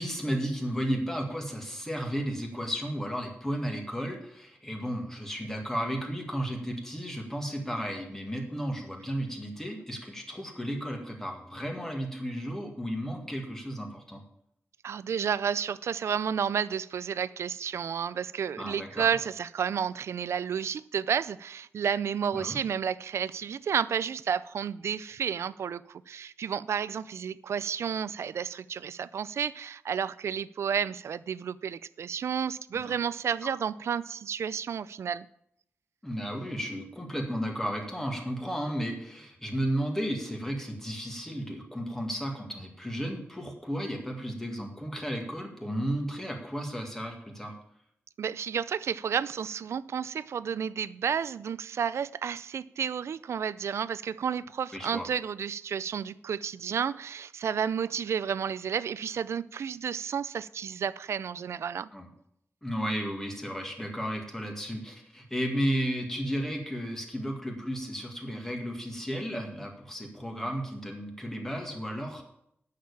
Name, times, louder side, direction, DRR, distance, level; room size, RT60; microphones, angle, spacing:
voice 1, 0.0-14.2 18.6-19.1 22.3-22.6 32.8-32.9 33.4-33.5 36.0-47.5 54.7-55.1 61.9-62.1 62.6-72.2, equal, 10° left, 1 dB, 1.9 m, -33 dB
voice 2, 14.8-35.3 48.2-61.9, right 7 dB, 90° right, 18 dB, 0.4 m, -31 dB
9.3 x 6.7 x 8.4 m, 0.73 s
wide cardioid pair, 165°, 5 cm